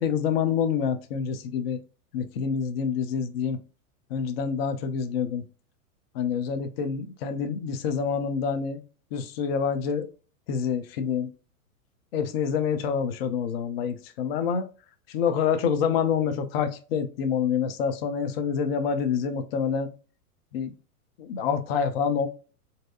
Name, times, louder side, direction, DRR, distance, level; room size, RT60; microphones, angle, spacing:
voice 1, 0.0-1.8 2.1-3.6 4.1-5.4 6.1-8.8 9.1-10.1 10.5-11.3 12.1-14.7 15.1-19.9 20.5-20.7 21.2-22.3, left 7 dB, 45° left, 9 dB, 0.4 m, -27 dB
2.6 x 2.3 x 2.2 m, 0.36 s
hypercardioid pair, 125°, 44 cm